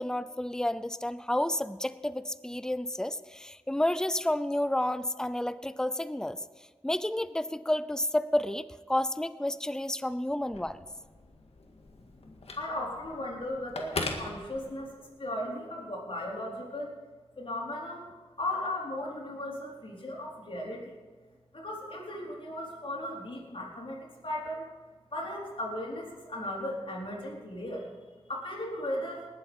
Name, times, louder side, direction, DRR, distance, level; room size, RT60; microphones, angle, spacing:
voice 1, 0.0-6.4 6.8-10.8, left 1 dB, 5° left, 13 dB, 0.6 m, -30 dB
Telephone, 10.4-15.1, left 3 dB, 75° left, 1.9 m, -40 dB
voice 2, 12.5-16.9 17.4-18.1 18.4-21.0 21.5-24.7 25.1-29.3, left 1 dB, 60° left, -3 dB, 4.2 m, -36 dB
19.5 x 7.9 x 5.5 m, 1.4 s
wide cardioid pair, 60°, 10 cm